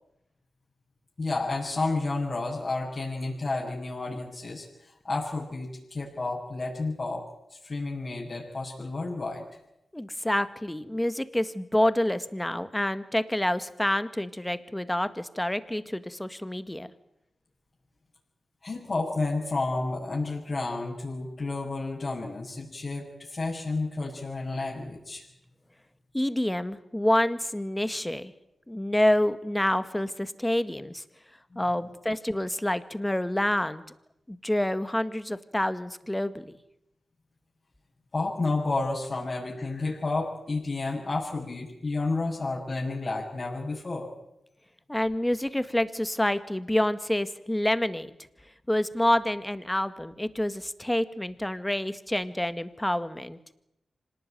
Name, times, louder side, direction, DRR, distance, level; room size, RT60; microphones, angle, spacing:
voice 1, 1.2-7.2 7.5-9.4 18.6-25.2 31.5-31.7 38.1-44.1, left 3 dB, 45° left, -6 dB, 7.1 m, -31 dB
voice 2, 9.9-16.9 26.1-28.3 28.7-31.0 31.6-33.8 34.3-36.5 44.9-48.1 48.7-53.4, left 1 dB, 10° left, 12 dB, 1.8 m, -27 dB
26.0 x 19.0 x 9.4 m, 0.84 s
cardioid pair, 70°, 0 cm